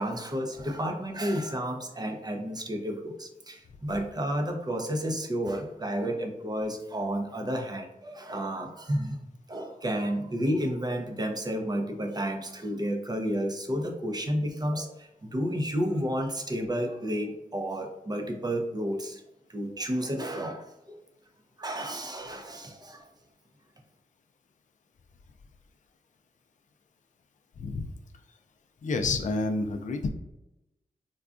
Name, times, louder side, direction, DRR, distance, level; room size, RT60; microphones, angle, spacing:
voice 1, 0.0-9.2 9.5-19.2 19.5-21.0 21.6-23.1, equal, 25° right, 3 dB, 0.6 m, -31 dB
voice 2, 27.6-27.9 28.8-30.1, left 3 dB, 55° left, 5 dB, 0.4 m, -29 dB
3.7 x 2.2 x 2.4 m, 0.94 s
cardioid pair, 55°, 16 cm